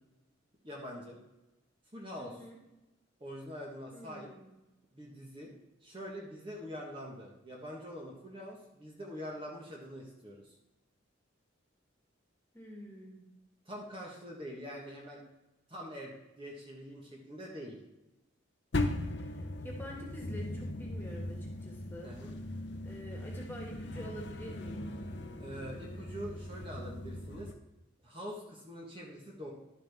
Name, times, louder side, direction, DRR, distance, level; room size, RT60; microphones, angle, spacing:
voice 1, 0.6-1.2 1.9-2.5 3.2-4.3 4.9-5.5 5.8-10.6 13.6-15.2 15.7-17.8 22.0-22.4 25.4-27.5 28.0-29.5, equal, 25° right, -2 dB, 1.4 m, -44 dB
voice 2, 2.2-2.6 3.9-4.5 12.5-13.2 19.1-22.1 22.8-24.9, equal, 10° left, -2 dB, 2.0 m, -47 dB
sound 1, 18.7-27.5, left 1 dB, 60° left, 0.8 m, -39 dB
11.5 x 7.4 x 3.6 m, 1.0 s
head